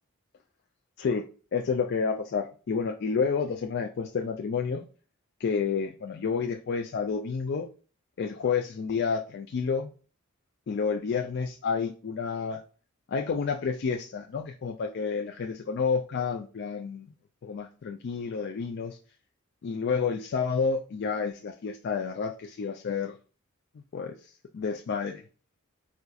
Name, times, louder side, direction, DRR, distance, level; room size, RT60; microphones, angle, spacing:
voice 1, 1.5-4.9 5.4-7.7 8.2-9.9 10.7-12.6 13.1-17.1 17.4-19.0 19.6-23.2 23.7-25.2, left 5 dB, 55° left, 2 dB, 0.3 m, -30 dB
4.3 x 2.5 x 2.3 m, 0.38 s
head